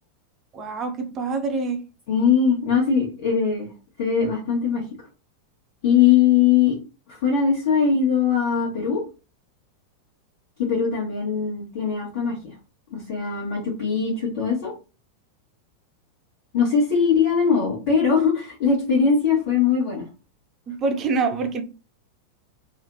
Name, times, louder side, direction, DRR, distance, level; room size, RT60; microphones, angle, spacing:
voice 1, 0.5-1.8 20.7-21.6, right 4 dB, 30° right, 0.5 m, -25 dB
voice 2, 2.1-3.7 4.0-4.9 5.8-6.8 7.1-9.0 10.6-12.6 12.9-14.7 16.5-20.1, left 6 dB, 50° left, 1.0 m, -21 dB
3.1 x 2.0 x 2.5 m
figure-of-eight pair, 90°, 0 cm